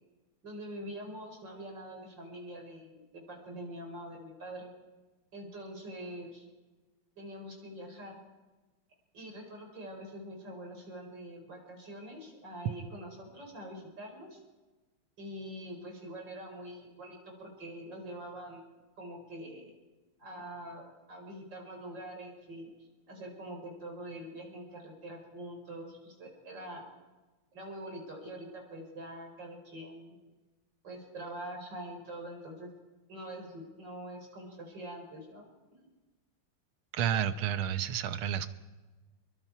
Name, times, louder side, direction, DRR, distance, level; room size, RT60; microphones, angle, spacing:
voice 1, 0.4-4.7 5.3-6.5 7.2-8.2 9.1-14.4 15.2-18.6 19.0-19.7 20.2-26.8 27.5-30.1 30.8-32.7 33.1-35.5, right 1 dB, 60° right, 2 dB, 5.0 m, -44 dB
voice 2, 36.9-38.5, right 9 dB, 90° right, 11 dB, 1.8 m, -30 dB
28.0 x 22.5 x 4.6 m, 1.2 s
omnidirectional pair, 2.3 m